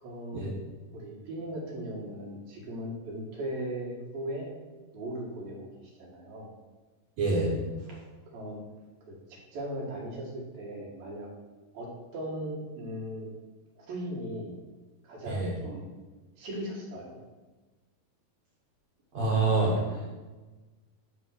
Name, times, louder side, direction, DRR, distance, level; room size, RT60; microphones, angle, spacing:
voice 1, 0.0-0.4 0.9-4.5 4.9-6.5 8.3-8.6 9.0-9.2 9.5-11.3 11.7-13.3 13.8-14.5 15.0-15.9 16.4-17.2, right 1 dB, 85° right, -4 dB, 3.8 m, -38 dB
voice 2, 7.2-7.5 7.9-8.0 15.3-15.5 19.1-20.1, right 3 dB, 60° right, -2 dB, 2.2 m, -27 dB
9.8 x 3.6 x 6.5 m, 1.3 s
omnidirectional pair, 4.1 m